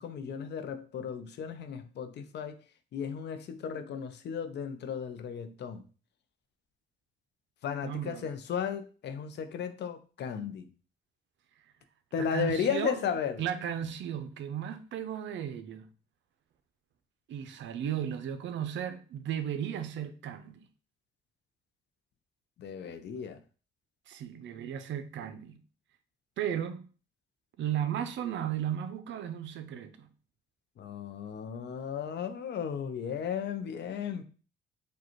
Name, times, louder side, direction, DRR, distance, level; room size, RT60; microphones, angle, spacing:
voice 1, 0.0-2.6 2.9-5.8 7.6-10.7 12.1-13.4 22.6-23.4 30.8-34.2, left 7 dB, 60° left, 0.5 m, -35 dB
voice 2, 7.8-8.3 12.2-13.0 13.4-15.9 17.3-20.7 24.1-25.6 26.4-26.8 27.6-30.1, right 9 dB, 70° right, 0.5 m, -35 dB
4.9 x 2.3 x 3.0 m
cardioid pair, 90°, 20 cm